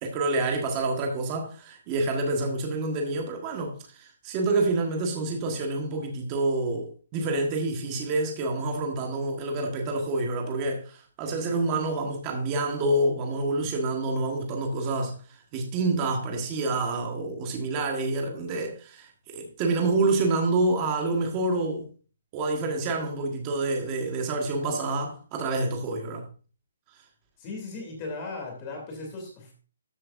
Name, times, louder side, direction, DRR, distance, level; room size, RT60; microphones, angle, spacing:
voice 1, 0.0-21.9 22.3-26.3, right 2 dB, 15° right, 1.4 m, -28 dB
voice 2, 27.4-29.5, left 3 dB, 15° left, 2.8 m, -37 dB
13.5 x 7.5 x 2.5 m
hypercardioid pair, 180°, 0 cm